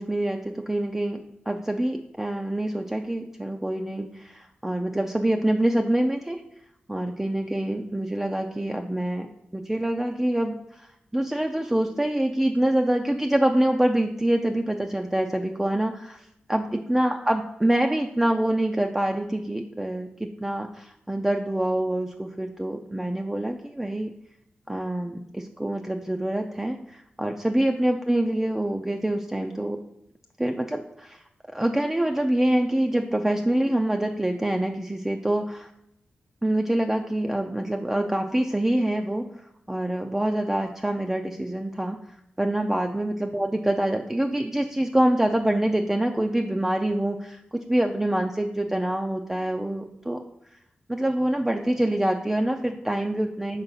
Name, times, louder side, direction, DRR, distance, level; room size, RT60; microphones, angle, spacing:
voice 1, 0.0-6.4 6.9-9.3 9.5-16.2 16.5-24.1 24.7-29.8 30.4-31.2 31.5-35.7 36.4-50.2 50.9-53.6, right 1 dB, 10° right, 3 dB, 0.4 m, -26 dB
4.4 x 4.0 x 5.6 m, 0.78 s
wide cardioid pair, 90°, 4 cm